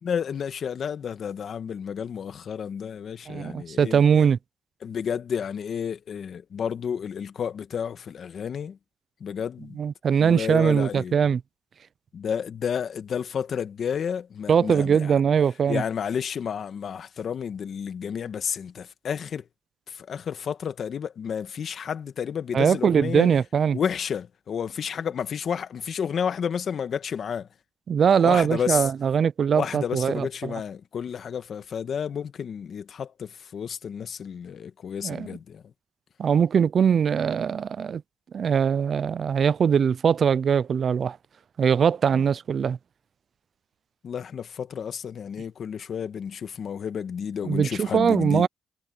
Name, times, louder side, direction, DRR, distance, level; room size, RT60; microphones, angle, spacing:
voice 1, 0.0-4.0 4.8-8.8 9.2-9.8 10.2-11.2 12.1-15.1 15.7-19.5 19.9-23.3 23.7-27.5 28.2-28.9 29.5-35.6 42.1-42.2 44.0-48.5, left 7 dB, 55° left, 1.5 m, -31 dB
voice 2, 3.3-4.4 9.8-11.4 14.5-15.8 22.5-23.8 27.9-30.5 35.0-35.3 36.2-38.0 38.3-41.2 41.6-42.8 47.4-48.5, right 7 dB, 50° right, 0.5 m, -21 dB
cardioid pair, 90°, 0 cm